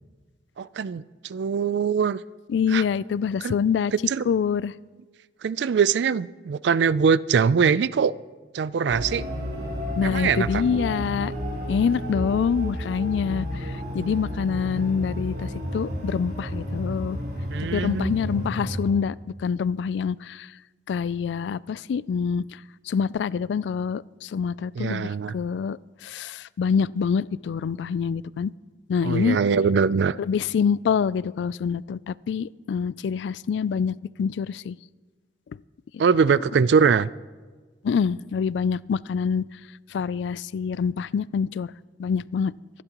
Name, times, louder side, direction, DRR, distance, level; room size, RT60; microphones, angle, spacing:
voice 1, 0.6-2.2 2.7-2.8 3.4-3.6 4.1-4.3 5.4-8.1 8.5-9.3 10.0-10.6 17.5-18.2 24.8-25.3 29.0-30.2 36.0-37.1, right 6 dB, 75° right, 19 dB, 0.4 m, -22 dB
voice 2, 2.5-3.9 4.3-4.7 10.0-11.3 11.7-17.2 17.7-20.5 20.9-22.4 22.9-28.5 28.9-29.4 30.2-34.8 37.8-39.4 39.9-41.7 42.0-42.5, left 6 dB, 80° left, 21 dB, 0.3 m, -26 dB
sound 1, 8.9-18.9, equal, 55° right, 4.0 m, -31 dB
25.0 x 11.5 x 3.0 m, 1.4 s
head